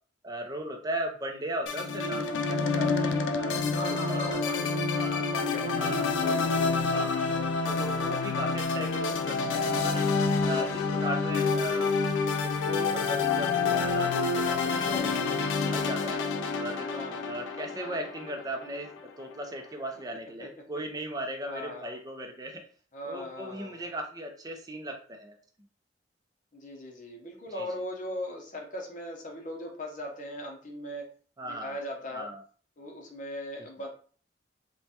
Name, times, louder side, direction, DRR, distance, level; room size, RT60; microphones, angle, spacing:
voice 1, 0.2-4.5 5.0-5.3 5.8-6.5 6.9-7.2 7.6-10.1 10.4-11.9 12.4-15.4 15.7-16.9 17.3-22.6 23.0-25.4 27.6-27.7 31.4-31.7 32.1-32.4, right 1 dB, 20° right, 4 dB, 0.5 m, -37 dB
sound 1, 1.7-19.0, left 4 dB, 85° left, 0.3 m, -28 dB
voice 2, 2.9-4.8 5.2-6.0 10.3-11.0 16.9-17.3 20.4-20.7 21.4-22.0 22.9-23.9 26.5-31.1 31.4-32.3 32.8-33.9, left 1 dB, 45° left, 0 dB, 0.7 m, -39 dB
3.1 x 2.2 x 2.8 m, 0.43 s
head